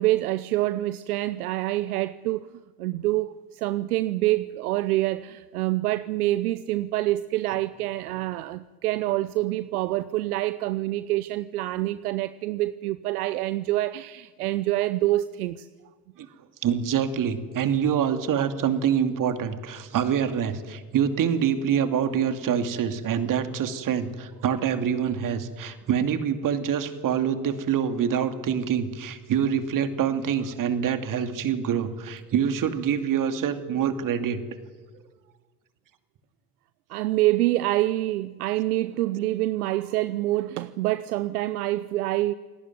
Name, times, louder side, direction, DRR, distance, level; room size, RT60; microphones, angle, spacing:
voice 1, 0.0-2.5 2.8-15.7 16.3-16.4 36.9-42.3, right 16 dB, 70° right, 0.8 m, -26 dB
voice 2, 16.6-34.4, right 8 dB, 45° right, 2.7 m, -25 dB
28.5 x 18.5 x 9.4 m
hypercardioid pair, 70°, 46 cm